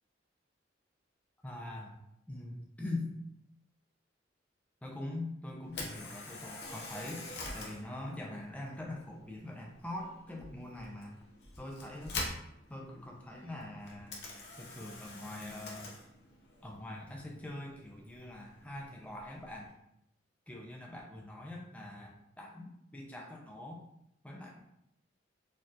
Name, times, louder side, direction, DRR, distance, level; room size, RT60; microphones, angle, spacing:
voice 1, 1.4-2.0 2.3-3.2 4.8-7.3 7.5-11.2 11.6-12.2 12.7-14.3 14.6-16.0 16.6-19.7 20.5-23.8 24.2-24.6, left 1 dB, 5° left, -1 dB, 0.5 m, -43 dB
Camera, 5.6-19.7, left 2 dB, 60° left, 0.8 m, -46 dB
4.2 x 2.9 x 2.5 m, 0.78 s
head